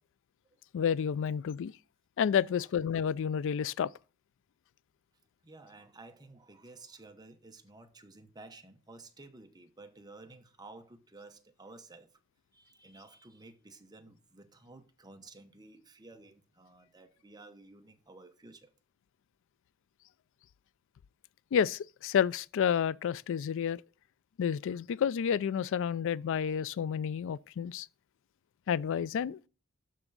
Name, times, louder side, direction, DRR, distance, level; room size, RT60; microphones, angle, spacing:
voice 1, 0.7-1.7 2.2-3.9 21.5-23.8 24.4-27.9 28.7-29.4, left 8 dB, 65° left, 0.3 m, -30 dB
voice 2, 5.4-12.1 12.5-18.7, right 2 dB, 20° right, 0.9 m, -53 dB
12.0 x 4.5 x 3.9 m
head